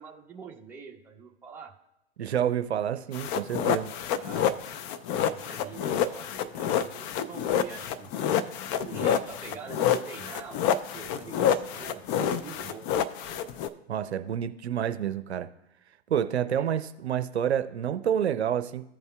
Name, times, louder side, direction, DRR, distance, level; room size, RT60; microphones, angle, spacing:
voice 1, 0.0-1.7 4.2-4.6 5.2-8.1 8.8-12.8 16.5-16.7, right 6 dB, 5° right, -2 dB, 1.2 m, -45 dB
voice 2, 2.2-3.9 13.9-15.5 16.1-18.9, right 9 dB, 80° right, 9 dB, 0.6 m, -28 dB
sound 1, 3.1-13.7, left 9 dB, 25° left, 0.4 m, -28 dB
15.5 x 5.4 x 2.3 m, 0.87 s
hypercardioid pair, 115°, 32 cm